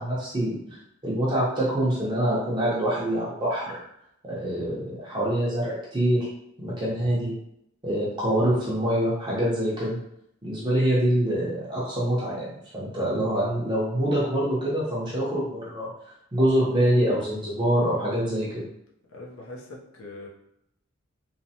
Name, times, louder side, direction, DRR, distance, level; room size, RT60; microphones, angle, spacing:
voice 1, 0.0-3.8 4.2-6.3 6.6-7.3 7.8-10.0 10.4-12.5 12.7-15.9 16.3-18.6, right 1 dB, 20° right, -7 dB, 0.6 m, -25 dB
voice 2, 19.1-20.3, left 2 dB, 80° left, -3 dB, 0.6 m, -41 dB
3.1 x 2.0 x 2.7 m, 0.76 s
head